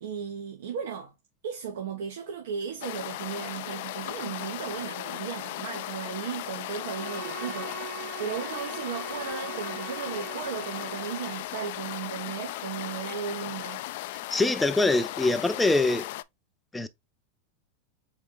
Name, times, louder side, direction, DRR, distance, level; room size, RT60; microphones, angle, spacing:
voice 1, 0.0-1.1 1.4-13.8, right 7 dB, 85° right, 0.9 m, -36 dB
sound 1, 2.8-16.2, left 16 dB, 65° left, 0.3 m, -37 dB
Bowed string instrument, 6.7-11.5, right 7 dB, 40° right, 1.0 m, -41 dB
voice 2, 14.3-16.1 16.7-16.9, left 2 dB, 10° left, 0.5 m, -24 dB
4.2 x 3.0 x 3.8 m
supercardioid pair, 130°, 0 cm